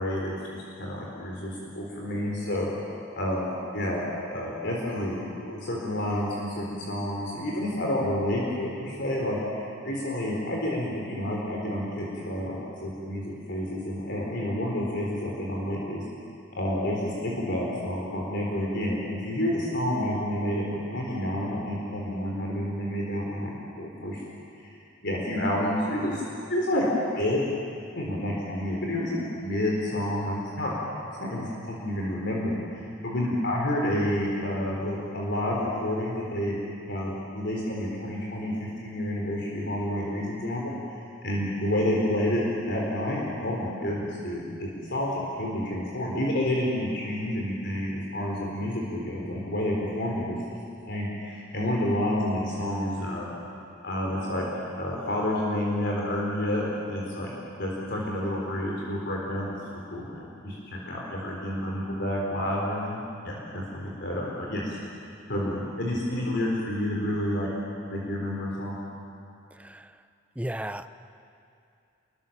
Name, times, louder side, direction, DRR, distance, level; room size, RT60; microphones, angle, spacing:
voice 1, 0.0-2.7 3.2-16.0 16.5-24.2 24.6-24.8 25.0-26.8 27.1-27.4 28.0-30.7 31.2-36.5 36.9-50.4 50.9-53.3 53.8-54.5 54.8-57.3 57.6-64.8 65.3-67.5 67.9-68.8, left 1 dB, 55° left, -3 dB, 3.9 m, -29 dB
voice 2, 69.5-69.9 70.4-70.9, right 1 dB, 5° right, 10 dB, 0.6 m, -34 dB
28.0 x 22.5 x 7.3 m, 2.5 s
head